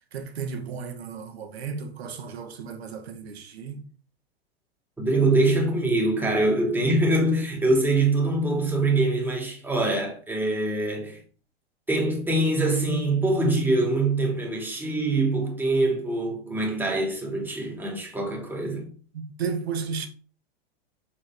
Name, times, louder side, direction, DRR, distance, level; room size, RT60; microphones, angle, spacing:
voice 1, 0.0-3.9 18.7-18.8 19.1-20.1, right 6 dB, 80° right, 1.8 m, -34 dB
voice 2, 5.0-11.2 11.9-18.9, right 2 dB, 5° right, 2.6 m, -24 dB
7.3 x 4.8 x 4.7 m
hypercardioid pair, 115°, 31 cm